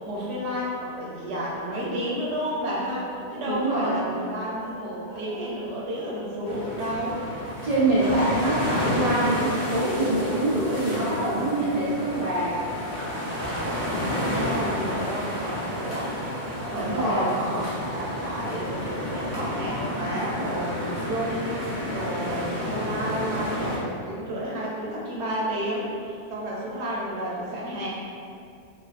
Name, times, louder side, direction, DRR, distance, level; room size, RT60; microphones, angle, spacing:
voice 1, 0.0-7.2 14.0-16.3 16.7-21.5 21.9-27.9, equal, 90° right, -5 dB, 0.9 m, -31 dB
sound 1, 2.8-3.6 4.6-5.6 6.1-7.1 8.2-8.4 8.9-9.2 9.9-10.2 10.4-10.7 11.0-11.3 11.9-12.1 12.4-12.7 13.2-13.5 14.1-14.4 14.9-15.2 15.5-15.8 16.2-16.8 17.1-17.4 17.8-18.0 18.3-20.5, left 1 dB, 80° left, 0.9 m, -43 dB
voice 2, 3.5-4.0 7.6-12.6 14.6-15.0 16.7-17.3, right 1 dB, 55° right, -10 dB, 0.4 m, -25 dB
sound 2, 6.4-23.8, equal, 45° left, 0.6 m, -31 dB
2.3 x 2.3 x 2.4 m, 2.4 s
omnidirectional pair, 1.1 m